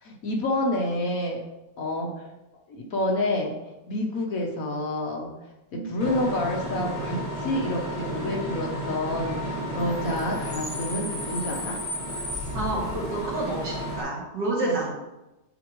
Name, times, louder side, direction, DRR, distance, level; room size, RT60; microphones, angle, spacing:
voice 1, 0.0-1.4 1.8-2.1 2.7-3.5 3.9-5.3 5.7-11.8 14.7-14.8, left 1 dB, 55° left, 0 dB, 1.3 m, -28 dB
voice 2, 5.7-6.0 12.5-14.9, right 2 dB, 75° right, -5 dB, 2.7 m, -29 dB
Bus / Idling / Screech, 6.0-14.0, equal, 25° left, 1.4 m, -32 dB
9.6 x 4.8 x 3.1 m, 0.99 s
omnidirectional pair, 1.9 m